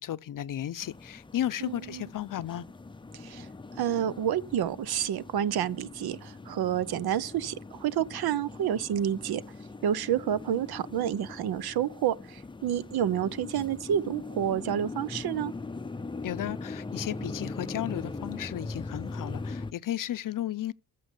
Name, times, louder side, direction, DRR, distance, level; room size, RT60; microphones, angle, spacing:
voice 1, 0.0-2.7 16.2-20.7, left 12 dB, 55° left, 0.6 m, -34 dB
sound 1, 0.8-19.7, left 3 dB, 15° left, 0.5 m, -41 dB
voice 2, 1.6-2.0 3.1-3.5 3.8-9.4 9.8-15.5, right 10 dB, 75° right, 0.8 m, -29 dB
14.5 x 5.5 x 8.3 m
cardioid pair, 95°, 38 cm